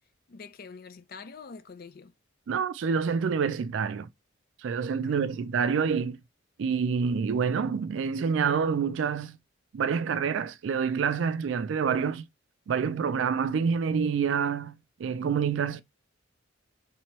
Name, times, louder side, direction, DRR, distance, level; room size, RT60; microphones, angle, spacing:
voice 1, 0.3-2.1 5.0-5.5, left 5 dB, 50° left, 0.5 m, -46 dB
voice 2, 2.5-4.1 4.6-6.2 6.6-9.4 9.7-12.3 12.7-14.7 15.0-15.8, right 6 dB, 65° right, 0.3 m, -27 dB
3.3 x 2.9 x 3.0 m
head